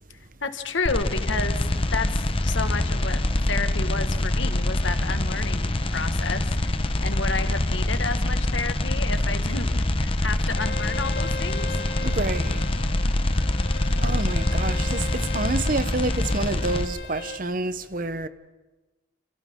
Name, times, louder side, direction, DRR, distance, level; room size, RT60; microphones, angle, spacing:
voice 1, 0.4-3.2 3.5-11.8 13.9-14.3, left 4 dB, 75° left, 1.7 m, -31 dB
sound 1, 0.9-16.9, left 1 dB, 30° left, 0.9 m, -25 dB
Bowed string instrument, 10.5-17.4, left 4 dB, 60° left, 1.0 m, -38 dB
voice 2, 12.0-12.6 14.0-18.3, right 2 dB, 45° right, 0.9 m, -28 dB
30.0 x 28.0 x 3.8 m
head